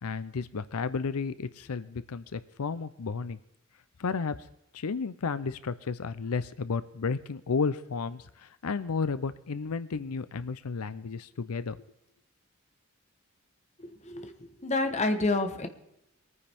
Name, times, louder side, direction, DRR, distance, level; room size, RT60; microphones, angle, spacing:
voice 1, 0.0-3.4 4.0-4.5 4.7-11.8, left 5 dB, 85° left, 14 dB, 0.6 m, -32 dB
voice 2, 14.6-15.7, left 2 dB, 30° left, 7 dB, 1.1 m, -28 dB
24.0 x 9.7 x 3.5 m, 0.84 s
head